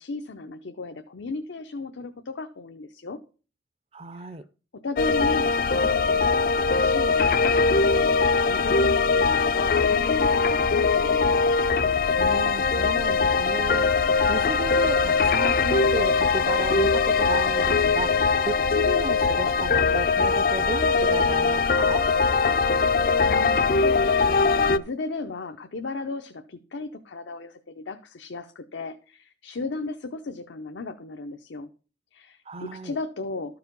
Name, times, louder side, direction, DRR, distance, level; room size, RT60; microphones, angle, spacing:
voice 1, 0.0-3.2 4.1-4.4 4.8-11.4 23.2-31.7 32.1-33.6, left 3 dB, 90° left, 0.6 m, -35 dB
voice 2, 3.9-4.4 12.2-13.9 14.3-18.2 18.4-22.1 32.5-33.0, right 3 dB, 35° right, 0.4 m, -34 dB
sound 1, 5.0-24.8, left 4 dB, 50° left, 0.4 m, -21 dB
13.0 x 4.8 x 5.2 m
head